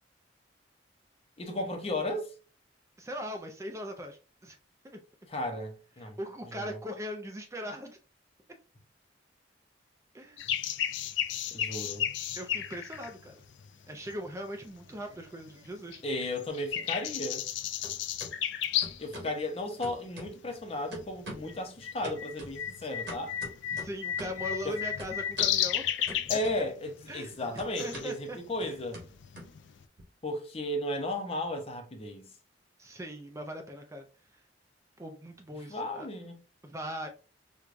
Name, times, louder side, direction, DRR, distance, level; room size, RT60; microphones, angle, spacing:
voice 1, 1.4-2.3 5.3-6.8 11.5-12.1 16.0-17.4 19.0-23.4 24.6-24.8 26.3-29.0 30.2-32.3 35.7-36.4, left 1 dB, 30° left, 0.6 m, -35 dB
voice 2, 3.0-4.6 4.8-5.0 6.0-8.0 10.1-10.4 12.3-13.4 13.9-16.0 23.7-25.8 27.1-27.3 27.8-28.4 32.8-34.1 35.0-36.1 36.6-37.1, equal, 15° right, 0.4 m, -40 dB
sound 1, 10.4-14.3 14.8-15.7 15.9-19.1 19.4-19.5 20.2-20.6 20.8-29.8, left 10 dB, 75° left, 0.4 m, -33 dB
sound 2, 14.7-15.7 16.0-17.6 17.8-18.3 18.8-19.4 19.8-20.6 20.9-21.6 22.0-24.5 25.0-25.6 26.1-26.9 27.2-30.0, right 1 dB, 65° right, 1.5 m, -46 dB
4.6 x 2.3 x 2.5 m
head